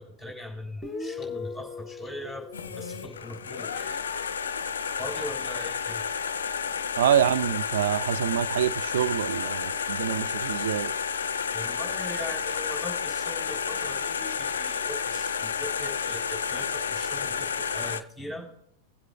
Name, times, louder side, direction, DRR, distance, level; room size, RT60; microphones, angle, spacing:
voice 1, 0.0-4.0 5.0-6.0 11.5-18.5, left 1 dB, 10° right, 3.6 m, -40 dB
Guitar, 0.8-4.3, left 4 dB, 15° left, 1.0 m, -40 dB
sound 1, 2.5-18.0, left 6 dB, 65° left, 0.4 m, -31 dB
voice 2, 7.0-10.9, right 10 dB, 60° right, 0.3 m, -26 dB
23.0 x 7.9 x 2.2 m
figure-of-eight pair, 90°, 0 cm